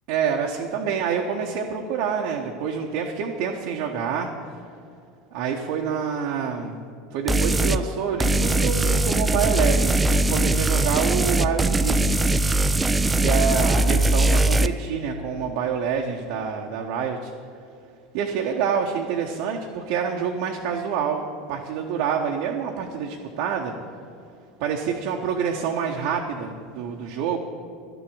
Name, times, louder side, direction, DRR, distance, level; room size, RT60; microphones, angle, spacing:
voice 1, 0.1-4.3 5.3-6.8 7.1-12.2 13.2-17.3 18.1-23.7 24.6-27.4, right 7 dB, 55° right, 0 dB, 0.9 m, -27 dB
sound 1, 7.3-7.8 8.2-14.7, right 2 dB, 15° right, 0.4 m, -20 dB
12.5 x 7.0 x 8.6 m, 2.4 s
figure-of-eight pair, 75°, 0 cm